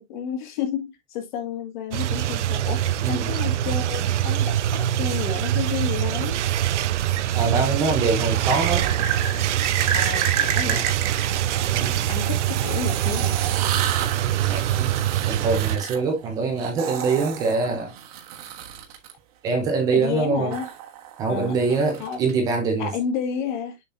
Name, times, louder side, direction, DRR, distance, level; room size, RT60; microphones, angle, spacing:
voice 1, 0.0-6.4 9.8-10.9 12.1-13.4 19.9-20.7 21.3-21.6 22.0-22.2 22.8-23.8, left 7 dB, 40° left, 1.8 m, -31 dB
sound 1, 1.9-15.8, right 12 dB, 65° right, 0.6 m, -24 dB
sound 2, 6.2-7.2 8.5-19.1 20.5-22.3, right 8 dB, 30° right, 1.2 m, -31 dB
voice 2, 7.3-8.9 10.6-10.8 11.7-12.0 14.4-14.9 15.3-17.9 19.4-20.6 21.2-23.0, right 4 dB, 10° right, 0.6 m, -24 dB
7.0 x 6.0 x 2.5 m
hypercardioid pair, 165°, 38 cm